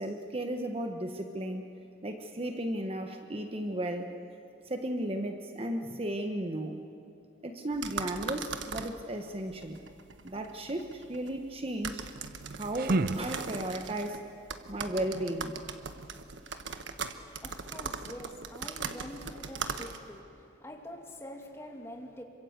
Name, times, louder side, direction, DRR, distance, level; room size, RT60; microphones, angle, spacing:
voice 1, 0.0-1.7 2.0-4.1 4.7-6.8 7.4-9.8 10.2-12.1 12.5-14.3 14.7-15.6, right 1 dB, 30° right, 5 dB, 1.2 m, -35 dB
sound 1, 7.7-20.2, right 5 dB, 90° right, 1.3 m, -40 dB
sound 2, 12.2-13.9, right 2 dB, 55° right, 0.5 m, -32 dB
voice 2, 16.8-22.2, equal, 15° left, 1 dB, 2.6 m, -46 dB
27.0 x 24.5 x 8.1 m, 2.5 s
head